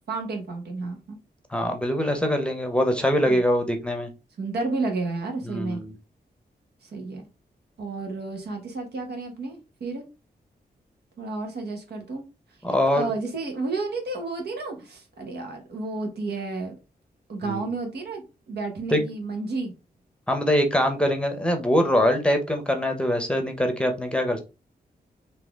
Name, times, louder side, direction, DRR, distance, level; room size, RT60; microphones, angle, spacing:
voice 1, 0.1-1.2 3.2-3.4 4.4-5.8 6.8-7.3 7.8-10.0 11.2-12.2 12.9-16.8 17.3-18.2 18.5-19.7, right 3 dB, 80° right, 3 dB, 1.3 m, -31 dB
voice 2, 1.5-4.1 5.4-5.9 12.6-13.1 17.5-17.6 18.9-19.0 20.3-24.4, equal, 5° left, 5 dB, 0.7 m, -23 dB
4.1 x 2.8 x 3.5 m, 0.29 s
wide cardioid pair, 130°, 17 cm